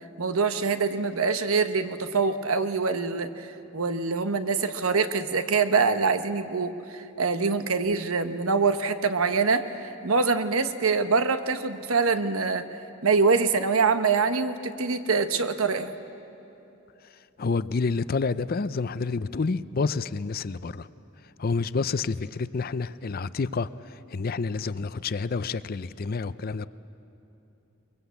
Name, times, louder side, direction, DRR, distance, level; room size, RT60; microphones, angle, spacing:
voice 1, 0.2-12.7 13.0-15.9, right 4 dB, 90° right, 1.1 m, -25 dB
voice 2, 17.4-20.9 21.4-26.7, left 4 dB, 45° left, 0.5 m, -29 dB
23.0 x 22.0 x 8.2 m
head